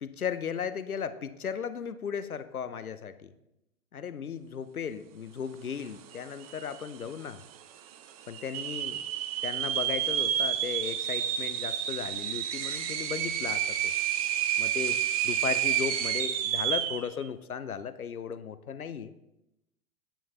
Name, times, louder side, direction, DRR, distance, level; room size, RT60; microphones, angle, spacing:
voice 1, 0.0-3.3 3.9-7.4 8.3-9.0 9.4-13.9 14.6-19.1, left 7 dB, 85° left, 13 dB, 0.7 m, -36 dB
whistling teapot, 6.1-6.2 6.4-7.0 7.5-7.6 8.3-17.1, right 10 dB, 30° right, 0.4 m, -30 dB
8.9 x 8.8 x 2.9 m, 0.90 s
figure-of-eight pair, 105°, 42 cm